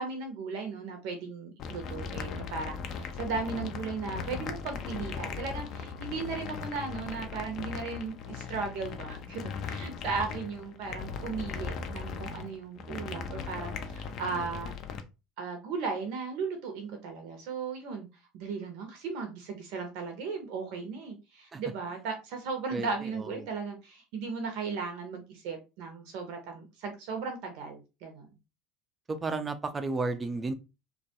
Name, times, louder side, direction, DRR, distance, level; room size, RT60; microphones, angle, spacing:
voice 1, 0.0-14.7 15.4-18.1 18.3-28.3, right 4 dB, 65° right, 0.6 m, -36 dB
sound 1, 1.6-15.0, left 6 dB, 50° left, 0.4 m, -38 dB
voice 2, 22.7-23.5 29.1-30.5, right 3 dB, 25° right, 0.4 m, -33 dB
2.2 x 2.2 x 2.7 m
hypercardioid pair, 80°, 0 cm